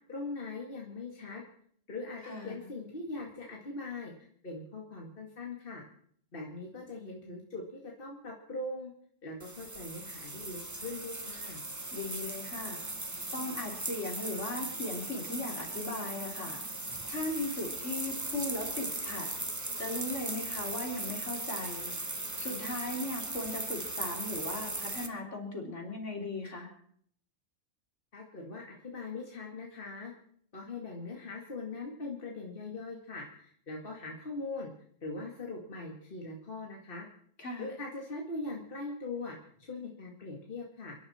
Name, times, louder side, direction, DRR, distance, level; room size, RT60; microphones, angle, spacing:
voice 1, 0.1-1.4 1.9-4.1 4.4-5.8 6.3-8.9 9.2-11.6 28.1-30.1 30.5-34.7 35.0-37.1 37.6-41.0, left 3 dB, 40° left, -1 dB, 2.3 m, -41 dB
voice 2, 2.2-2.6 11.9-12.8 13.3-16.6 17.1-19.3 19.8-21.9 22.4-26.7 37.4-37.7, left 2 dB, 60° left, 1 dB, 3.8 m, -38 dB
sound 1, 9.4-25.1, right 2 dB, 15° right, 1.1 m, -38 dB
29.5 x 11.0 x 4.3 m, 0.63 s
omnidirectional pair, 1.4 m